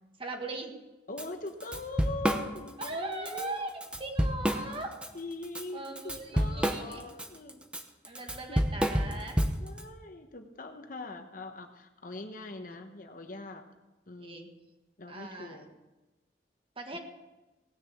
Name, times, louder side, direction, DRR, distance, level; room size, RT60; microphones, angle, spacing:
voice 1, 0.2-0.7 2.8-3.7 4.0-5.0 5.7-7.0 8.1-9.4 12.7-12.8 14.2-14.5 15.1-15.7 16.8-17.0, right 2 dB, 30° right, 3 dB, 1.7 m, -39 dB
voice 2, 1.1-3.5 5.1-7.6 8.5-8.7 9.6-13.6 14.1-14.6 15.0-15.7 16.9-17.0, left 2 dB, 50° left, 6 dB, 1.1 m, -42 dB
Drum kit / Drum, 1.2-1.3 1.6-2.9 3.3-3.4 3.8-5.1 5.4-9.8, equal, 5° right, 0.9 m, -29 dB
18.0 x 6.8 x 7.1 m, 1.1 s
head